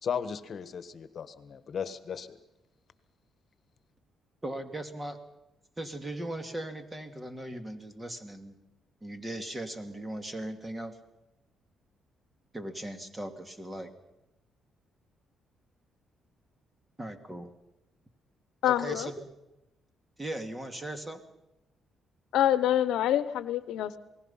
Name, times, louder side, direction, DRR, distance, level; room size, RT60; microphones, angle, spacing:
voice 1, 0.0-2.4, left 7 dB, 50° left, 12 dB, 1.4 m, -36 dB
voice 2, 4.4-5.2 5.8-8.6 9.0-11.0 12.5-13.9 17.0-17.5 18.7-19.3 20.2-21.2, right 1 dB, 15° right, 7 dB, 2.5 m, -38 dB
voice 3, 18.6-19.1 22.3-24.0, left 11 dB, 85° left, 14 dB, 0.9 m, -26 dB
27.5 x 19.0 x 5.7 m, 0.95 s
cardioid pair, 90°, 0 cm